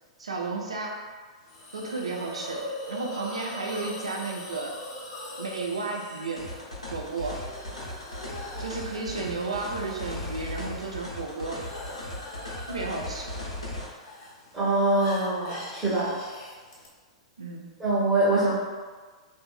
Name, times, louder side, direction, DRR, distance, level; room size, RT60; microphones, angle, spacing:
voice 1, 0.2-1.0 1.7-2.6 2.9-4.7 5.4-6.4 6.9-7.4 8.6-11.8 12.7-13.4 17.4-17.7, right 3 dB, 70° right, 0 dB, 0.5 m, -33 dB
Hiss, 1.5-16.9, left 1 dB, 45° left, 0.6 m, -42 dB
sound 1, 6.4-13.9, left 1 dB, 85° left, 0.8 m, -37 dB
voice 2, 14.5-16.1 17.8-18.5, right 2 dB, 15° right, -11 dB, 0.9 m, -24 dB
3.0 x 2.6 x 2.3 m, 1.4 s
figure-of-eight pair, 100°, 3 cm